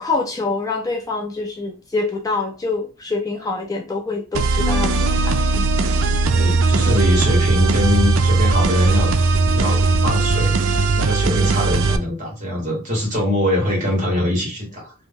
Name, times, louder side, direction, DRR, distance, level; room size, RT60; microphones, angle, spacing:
voice 1, 0.0-5.8 11.3-11.5, left 3 dB, 15° left, 0.4 m, -26 dB
sound 1, 4.3-12.0, right 3 dB, 75° right, 0.4 m, -18 dB
Bass guitar, 4.6-10.9, left 10 dB, 80° left, 0.6 m, -35 dB
voice 2, 6.2-9.1 9.5-14.9, left 1 dB, 35° right, 1.5 m, -23 dB
2.9 x 2.2 x 3.5 m
head